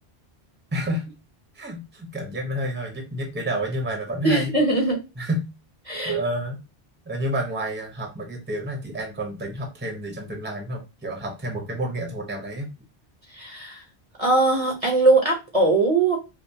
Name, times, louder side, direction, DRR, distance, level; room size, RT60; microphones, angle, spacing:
voice 1, 0.7-1.1 1.5-4.5 5.2-5.5 6.0-6.6 7.0-12.7, right 1 dB, 10° right, 2 dB, 0.8 m, -29 dB
voice 2, 4.2-5.0 5.9-6.2 13.3-13.8 14.2-16.2, right 2 dB, 35° right, -1 dB, 0.9 m, -20 dB
5.1 x 2.0 x 2.7 m, 0.27 s
omnidirectional pair, 1.0 m